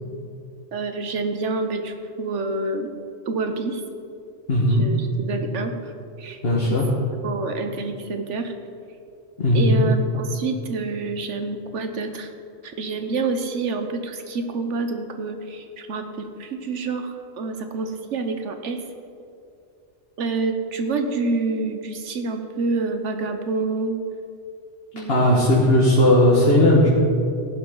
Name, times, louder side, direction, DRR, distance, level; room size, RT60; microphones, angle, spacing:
voice 1, 0.7-2.9 3.3-3.8 4.7-5.9 6.2-6.4 6.7-8.5 9.5-12.3 12.6-18.8 20.2-24.0 24.9-25.5, right 3 dB, 90° right, 6 dB, 1.3 m, -27 dB
voice 2, 4.5-4.8 6.4-6.9 9.4-9.8 25.1-26.9, left 1 dB, 55° left, -5 dB, 1.9 m, -17 dB
15.0 x 11.5 x 3.9 m, 2.5 s
omnidirectional pair, 1.2 m